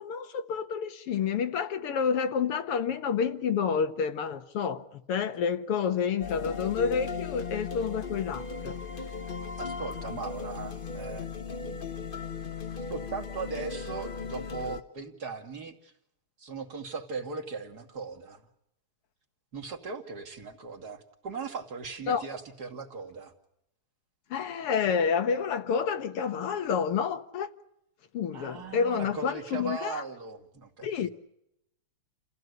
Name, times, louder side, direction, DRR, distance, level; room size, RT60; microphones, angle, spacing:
voice 1, 0.0-8.8 22.1-22.2 24.3-27.5 28.1-30.0 30.8-31.1, left 6 dB, 90° left, 2.4 m, -29 dB
sound 1, 6.2-14.8, left 5 dB, 35° left, 1.0 m, -37 dB
voice 2, 9.6-11.3 11.7-11.8 12.9-15.9 16.4-18.4 19.5-23.3 28.3-31.1, right 4 dB, 45° right, 2.9 m, -38 dB
29.5 x 15.5 x 9.5 m
omnidirectional pair, 2.4 m